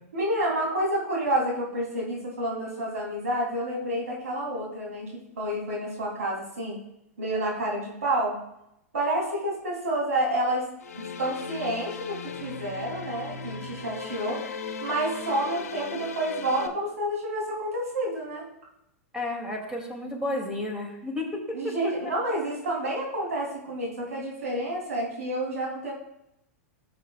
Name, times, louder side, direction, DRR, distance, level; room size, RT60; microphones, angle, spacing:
voice 1, 0.1-6.8 7.2-8.4 8.9-10.6 10.9-14.4 14.8-18.5 21.5-25.9, right 1 dB, 90° right, -4 dB, 3.0 m, -29 dB
sound 1, 10.8-16.7, left 5 dB, 85° left, 0.9 m, -37 dB
voice 2, 19.1-21.9, left 2 dB, 10° right, 0 dB, 2.5 m, -32 dB
15.5 x 7.2 x 2.3 m, 0.82 s
hypercardioid pair, 120°, 8 cm